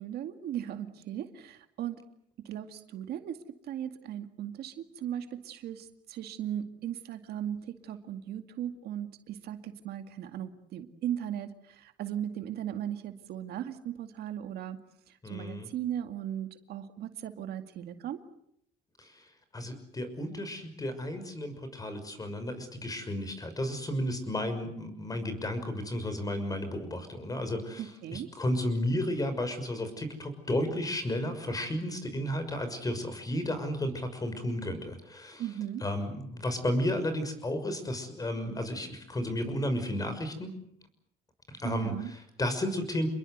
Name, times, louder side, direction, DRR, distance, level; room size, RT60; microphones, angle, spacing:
voice 1, 0.0-2.0 2.4-14.8 15.1-18.2 27.8-28.3 35.4-35.8 41.6-42.1, right 10 dB, 70° right, 8 dB, 2.2 m, -37 dB
voice 2, 15.2-15.7 19.0-35.4 35.8-40.5 41.5-43.1, left 1 dB, 20° left, 10 dB, 6.2 m, -33 dB
28.5 x 22.0 x 8.1 m, 0.71 s
cardioid pair, 110°, 17 cm